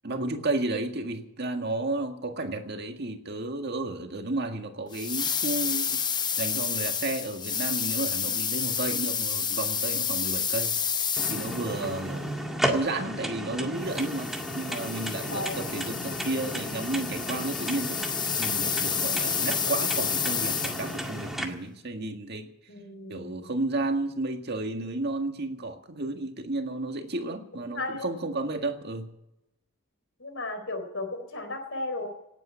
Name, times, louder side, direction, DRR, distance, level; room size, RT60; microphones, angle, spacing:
voice 1, 0.0-6.0 6.4-10.8 11.3-12.3 12.7-22.5 23.1-29.1, right 2 dB, 50° right, 5 dB, 1.8 m, -32 dB
sound 1, 4.9-11.9 13.8-21.1, left 7 dB, 20° left, 0.8 m, -30 dB
sound 2, 11.2-21.4, equal, ahead, 1.9 m, -34 dB
voice 2, 11.6-12.0 15.3-15.6 22.7-23.5 27.7-28.1 30.2-32.1, left 2 dB, 65° left, 7 dB, 4.0 m, -35 dB
18.0 x 8.9 x 8.5 m, 0.86 s
head